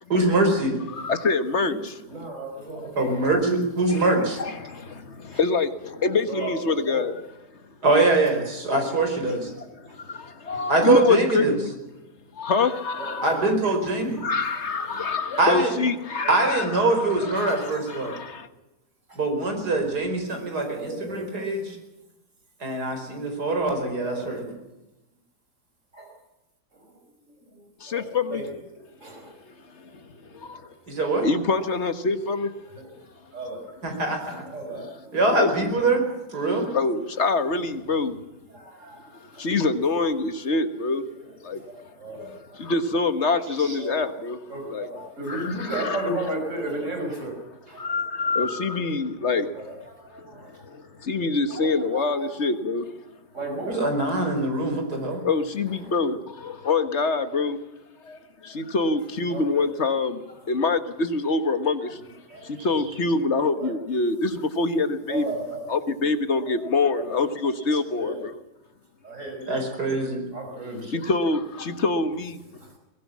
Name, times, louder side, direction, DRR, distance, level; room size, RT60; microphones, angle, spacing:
voice 1, 0.1-0.8 3.0-4.4 7.8-9.5 10.7-11.6 13.2-14.2 15.4-15.8 16.3-18.1 19.2-21.8 22.6-24.4 30.9-31.3 33.8-34.4 35.1-36.7 43.6-43.8 53.7-55.2 69.5-70.2, right 2 dB, 75° right, 4 dB, 5.4 m, -23 dB
voice 2, 0.9-2.0 3.9-4.0 4.4-7.2 9.5-11.7 12.3-13.4 14.2-16.9 17.2-18.5 27.8-28.6 30.3-30.7 31.0-32.5 35.4-35.5 36.7-38.2 39.2-41.1 41.4-41.6 42.5-44.4 44.7-46.0 47.8-49.5 50.2-52.9 55.2-57.6 58.0-62.0 62.4-65.2 65.7-68.4 70.9-72.4, left 3 dB, 45° left, 10 dB, 1.6 m, -25 dB
voice 3, 2.1-3.3 4.1-4.5 5.3-5.4 6.3-7.2 9.3-9.4 9.9-10.0 10.5-10.6 13.0-13.6 17.4-17.8 19.1-19.2 20.7-21.2 24.0-24.4 25.9-26.1 26.7-27.0 27.5-29.3 30.6-30.7 32.8-32.9 33.3-33.6 34.2-35.2 38.5-39.0 39.3-39.5 41.3-42.7 43.8-44.1 44.5-47.3 47.7-48.0 48.2-48.3 49.3-50.7 51.5-52.3 53.3-53.7 55.8-55.9 59.3-59.7 62.3-62.7 63.5-63.7 65.1-65.6 66.9-67.2 68.0-68.2 69.0-69.5 70.3-70.9 72.6-72.7, right 2 dB, 45° right, 3 dB, 5.5 m, -35 dB
22.5 x 18.0 x 7.3 m, 0.99 s
omnidirectional pair, 1.7 m